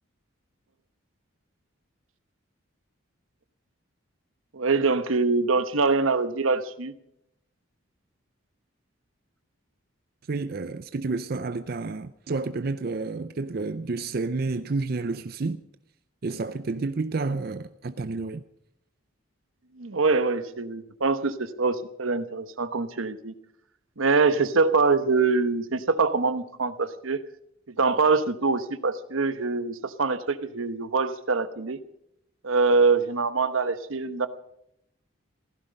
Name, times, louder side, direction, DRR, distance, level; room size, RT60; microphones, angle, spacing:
voice 1, 4.5-6.9 19.8-23.3 24.0-27.2 27.7-31.8 32.4-34.3, right 4 dB, 80° right, 1.0 m, -24 dB
voice 2, 10.3-15.6 16.2-18.4, right 3 dB, 45° right, 0.5 m, -30 dB
16.0 x 15.0 x 5.3 m
head